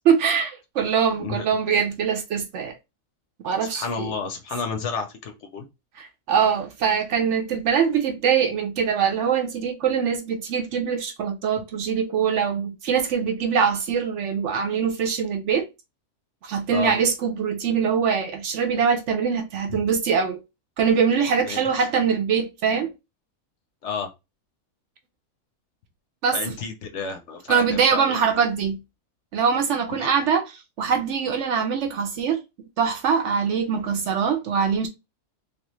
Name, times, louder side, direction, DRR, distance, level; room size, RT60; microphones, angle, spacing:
voice 1, 0.0-2.7 3.4-4.1 6.0-15.7 16.4-20.4 20.8-22.9 26.2-26.5 27.5-28.8 29.3-30.4 30.8-32.4 32.8-34.9, right 6 dB, 65° right, 0.8 m, -23 dB
voice 2, 3.6-5.7 16.7-16.9 19.7-19.8 21.5-21.9 23.8-24.1 26.3-28.2 29.9-30.1, left 5 dB, 65° left, 0.8 m, -31 dB
3.4 x 2.3 x 3.0 m
omnidirectional pair, 1.5 m